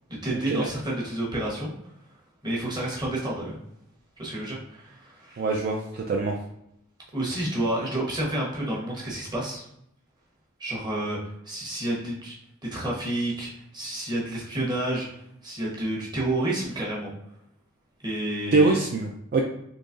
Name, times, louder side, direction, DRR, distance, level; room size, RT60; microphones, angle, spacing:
voice 1, 0.2-1.7 2.4-3.6 4.2-5.4 7.1-9.6 10.6-11.2 11.4-12.3 12.7-17.1 18.0-18.8, right 1 dB, 20° right, -4 dB, 1.0 m, -30 dB
voice 2, 5.4-6.4 18.5-19.4, right 3 dB, 45° right, 1 dB, 0.3 m, -24 dB
3.9 x 2.9 x 2.5 m, 0.78 s
head